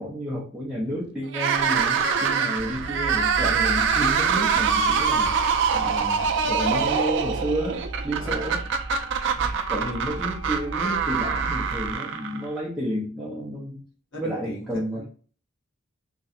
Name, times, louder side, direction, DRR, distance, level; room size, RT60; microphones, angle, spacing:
voice 1, 0.0-5.3 5.7-8.6 9.7-13.8 14.2-15.0, equal, ahead, -8 dB, 0.5 m, -31 dB
sound 1, 1.3-12.6, right 6 dB, 60° right, 0.4 m, -24 dB
sound 2, 2.5-12.0, right 2 dB, 80° left, 1.3 m, -36 dB
voice 2, 2.6-3.0 8.2-8.5 9.3-9.6 14.1-15.1, equal, 60° left, -4 dB, 1.1 m, -41 dB
Wind instrument woodwind instrument, 4.5-12.8, right 3 dB, 30° right, 0.9 m, -47 dB
2.7 x 2.2 x 2.4 m, 0.42 s
head